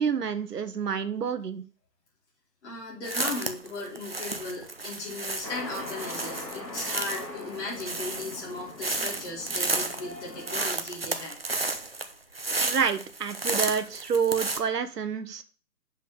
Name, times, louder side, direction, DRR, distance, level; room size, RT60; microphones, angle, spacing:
voice 1, 0.0-1.6 12.6-15.4, right 6 dB, 75° right, 10 dB, 1.0 m, -28 dB
voice 2, 2.6-11.4, left 2 dB, 45° left, -6 dB, 4.6 m, -37 dB
sound 1, 3.0-14.6, right 3 dB, 40° right, 0.5 m, -32 dB
sound 2, 5.4-10.6, left 2 dB, 90° left, 3.0 m, -41 dB
7.2 x 5.4 x 5.0 m, 0.40 s
hypercardioid pair, 170°, 49 cm